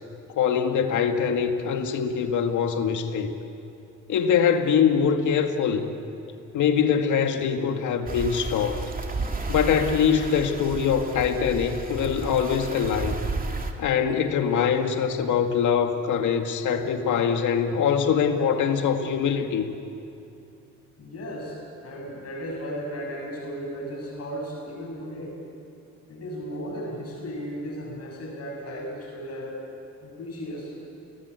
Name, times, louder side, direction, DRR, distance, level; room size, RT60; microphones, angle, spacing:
voice 1, 0.4-3.3 4.1-5.9 6.5-8.9 9.5-13.2 13.8-19.7, left 7 dB, 75° left, 6 dB, 2.2 m, -23 dB
sound 1, 8.1-13.7, right 3 dB, 30° right, 2.8 m, -32 dB
voice 2, 21.0-25.4 26.1-29.6 30.0-30.7, equal, 55° left, -2 dB, 7.2 m, -35 dB
30.0 x 19.0 x 8.4 m, 2.8 s
cardioid pair, 90°, 30 cm